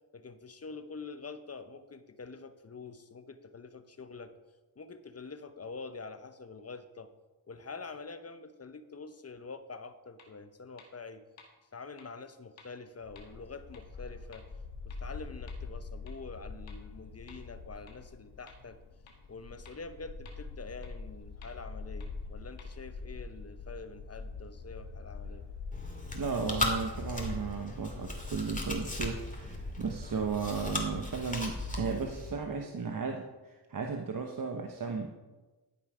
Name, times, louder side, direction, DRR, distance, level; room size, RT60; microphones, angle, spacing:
voice 1, 0.1-4.3 4.8-7.1 7.5-11.2 11.7-14.5 14.8-18.8 19.3-25.4, left 4 dB, 30° left, 10 dB, 0.9 m, -46 dB
sound 1, 10.2-10.3 10.8-10.9 11.4-11.5 12.0-12.1 12.6-12.7 13.2-13.3 13.7-13.8 14.3-14.4 14.9-15.0 15.5-15.6 16.1-16.2 16.7-16.8 17.3-17.4 17.9-18.0 18.5-18.6 19.1-19.2 19.7-19.8 20.3-20.4 20.8-20.9 21.4-21.5 22.0-22.1 22.6-22.7, left 5 dB, 85° left, 1.7 m, -54 dB
Bark, 13.0-32.2, left 4 dB, 60° left, 1.3 m, -44 dB
Chewing mastication, 25.7-32.3, left 2 dB, 15° left, 2.2 m, -37 dB
voice 2, 26.1-35.1, right 5 dB, 45° right, 2 dB, 1.0 m, -35 dB
14.0 x 5.5 x 5.0 m, 1.2 s
cardioid pair, 55°, 45 cm